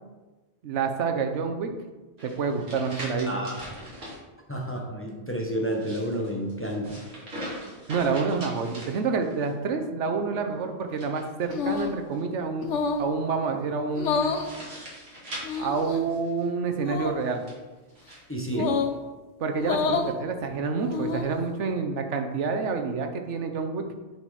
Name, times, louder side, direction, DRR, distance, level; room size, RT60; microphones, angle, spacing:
voice 1, 0.6-1.7 2.2-3.3 7.9-12.7 13.0-14.3 15.6-17.4 18.6-18.7 19.4-23.8, right 5 dB, 85° right, 5 dB, 1.1 m, -28 dB
sound 1, 2.2-4.2 5.6-9.5 10.9-12.2 14.0-16.5 17.2-18.2, equal, 60° right, 2.3 m, -41 dB
voice 2, 3.3-3.6 4.5-7.0 18.3-18.7, right 1 dB, 10° left, 0 dB, 0.9 m, -30 dB
sound 2, 11.5-12.0 12.6-13.1 13.9-14.5 15.4-16.0 16.8-17.2 18.5-19.0 19.6-20.1 20.8-21.4, left 5 dB, 90° left, 1.0 m, -28 dB
6.9 x 4.3 x 4.7 m, 1.2 s
omnidirectional pair, 1.2 m